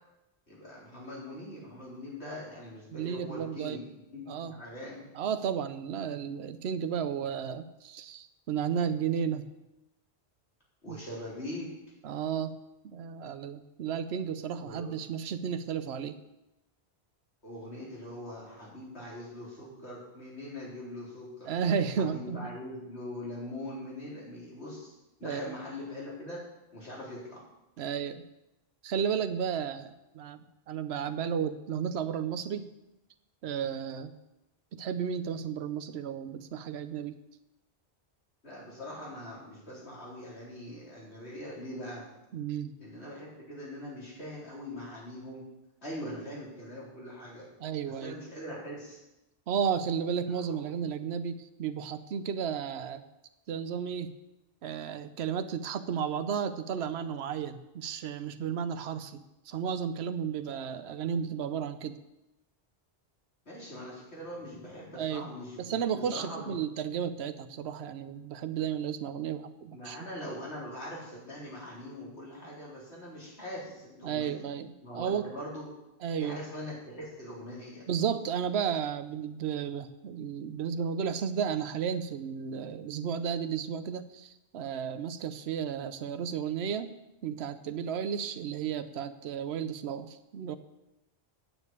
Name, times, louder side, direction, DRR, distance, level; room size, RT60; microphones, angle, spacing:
voice 1, 0.5-3.8 4.1-5.1 10.8-11.7 14.6-14.9 17.4-21.5 22.0-24.9 25.2-26.4 26.7-27.4 38.4-42.0 42.8-45.4 45.8-47.5 47.9-49.0 50.4-50.6 63.5-66.5 69.7-74.4 74.8-75.7 76.2-77.8, left 1 dB, 80° left, -5 dB, 4.2 m, -42 dB
voice 2, 2.9-3.8 4.3-4.6 5.1-9.4 10.9-11.0 12.0-12.6 12.8-16.2 21.5-22.5 25.2-25.5 27.8-28.2 28.8-32.6 33.4-34.1 34.7-37.1 42.3-42.7 47.6-48.2 49.5-53.0 53.5-54.1 54.6-62.0 65.0-65.3 65.6-70.0 74.0-75.3 76.0-76.4 77.9-86.9 87.2-90.6, right 7 dB, 75° right, 11 dB, 1.0 m, -33 dB
9.1 x 7.4 x 8.2 m, 0.94 s
omnidirectional pair, 1.1 m